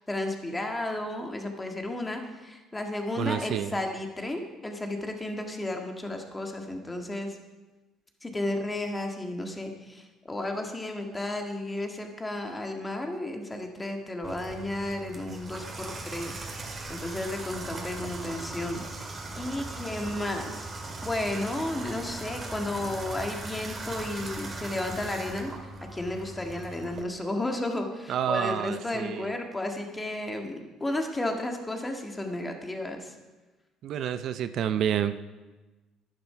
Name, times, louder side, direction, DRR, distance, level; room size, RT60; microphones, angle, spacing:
voice 1, 0.0-7.4 8.2-18.8 19.4-20.7 21.0-33.1, left 1 dB, 15° left, 3 dB, 1.7 m, -33 dB
voice 2, 3.2-3.8 28.1-29.3 33.8-35.2, right 9 dB, 60° right, 11 dB, 0.5 m, -29 dB
Water tap faucet / Bathtub (filling or washing), 14.2-27.0, right 2 dB, 30° right, 2.1 m, -39 dB
11.0 x 10.5 x 5.7 m, 1.2 s
cardioid pair, 110°, 0 cm